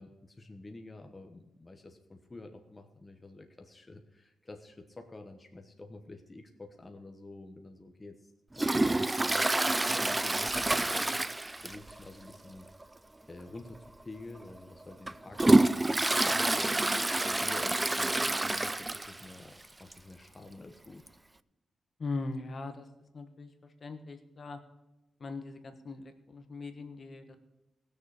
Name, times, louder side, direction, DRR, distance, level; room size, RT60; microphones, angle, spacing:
voice 1, 0.0-8.3 8.6-11.2 11.6-12.7 13.3-21.1, left 2 dB, 20° left, 4 dB, 1.1 m, -49 dB
Toilet flush, 8.6-12.0 12.3-12.4 12.8-12.9 13.7-13.9 14.4-19.3 19.6-19.7 19.9-20.0 21.1-21.2, right 2 dB, 15° right, 0.4 m, -27 dB
voice 2, 22.0-22.9 23.1-24.6 25.2-27.4, left 3 dB, 40° left, 8 dB, 1.2 m, -40 dB
19.5 x 6.8 x 4.9 m, 1.0 s
wide cardioid pair, 120°, 0 cm